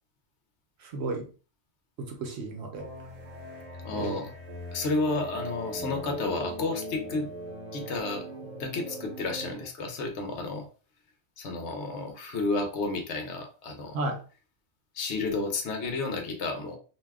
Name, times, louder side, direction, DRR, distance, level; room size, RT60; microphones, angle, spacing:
voice 1, 0.8-1.3 2.0-2.9 3.9-4.3 13.9-14.2, right 2 dB, 70° right, 0.9 m, -33 dB
sound 1, 2.8-9.7, right 1 dB, 35° right, 0.9 m, -40 dB
voice 2, 3.8-4.3 4.7-7.3 7.7-10.7 11.4-14.0 14.9-16.8, left 3 dB, 75° left, 1.0 m, -31 dB
2.6 x 2.2 x 3.3 m
omnidirectional pair, 1.2 m